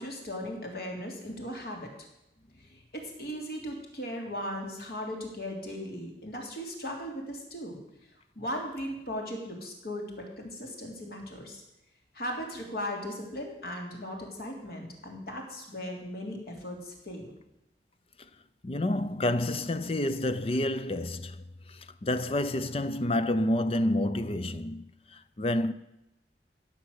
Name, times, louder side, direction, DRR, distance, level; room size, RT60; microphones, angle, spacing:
voice 1, 0.0-2.1 2.6-7.8 8.3-11.6 12.1-17.3, equal, 60° left, 3.3 m, -37 dB
voice 2, 18.6-25.7, left 1 dB, 35° left, 0.6 m, -29 dB
16.0 x 7.1 x 8.1 m
head